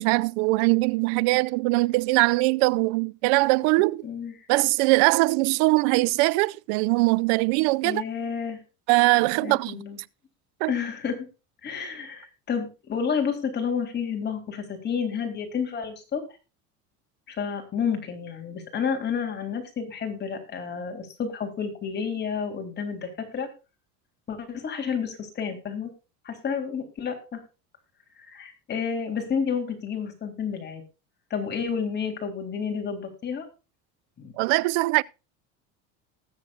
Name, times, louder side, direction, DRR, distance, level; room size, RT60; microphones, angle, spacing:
voice 1, 0.0-4.1 4.5-8.0 8.9-9.8 10.6-10.7 34.4-35.0, right 24 dB, 75° right, 0.6 m, -21 dB
voice 2, 4.0-4.3 7.8-8.6 9.4-10.0 10.7-11.3 11.6-16.2 17.3-23.5 24.3-25.9 26.2-27.4 28.2-30.8 31.3-33.5 34.2-34.3, left 6 dB, 30° left, 3.6 m, -30 dB
19.5 x 7.7 x 2.5 m
cardioid pair, 125°, 33 cm